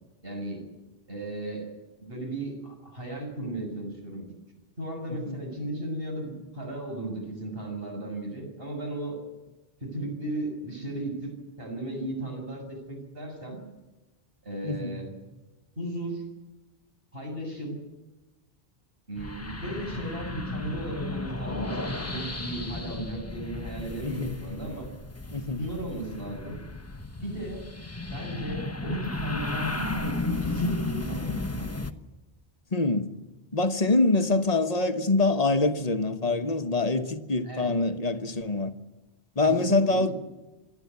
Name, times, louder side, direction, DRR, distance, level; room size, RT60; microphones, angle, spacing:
voice 1, 0.2-0.6 1.1-1.7 2.0-4.3 4.8-9.2 9.8-13.6 14.4-15.1 15.8-16.2 17.1-17.8 19.1-24.9 25.5-26.6 27.2-27.7 28.1-31.8 37.4-37.7 39.4-40.1, right 1 dB, 65° right, 7.3 m, -35 dB
voice 2, 14.6-15.0 24.0-24.4 25.3-25.6 32.7-33.1 33.5-38.7 39.4-40.1, left 3 dB, 40° left, 1.3 m, -25 dB
sound 1, 19.2-31.9, left 3 dB, 15° left, 0.9 m, -34 dB
26.5 x 12.0 x 9.5 m
omnidirectional pair, 1.0 m